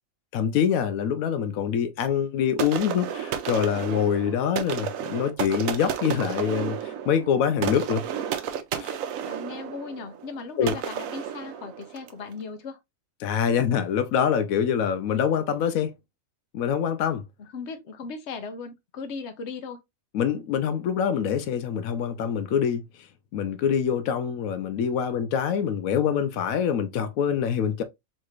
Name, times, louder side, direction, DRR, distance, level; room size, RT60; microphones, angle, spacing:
voice 1, 0.3-8.0 8.8-9.0 10.6-10.7 13.2-15.9 16.5-17.2 20.1-22.8 23.3-27.8, left 8 dB, 85° left, 1.0 m, -25 dB
sound 1, 2.6-12.2, right 9 dB, 80° right, 1.0 m, -32 dB
voice 2, 9.2-12.8 17.4-19.8, left 4 dB, 60° left, 1.0 m, -37 dB
4.1 x 3.2 x 2.4 m
omnidirectional pair, 1.4 m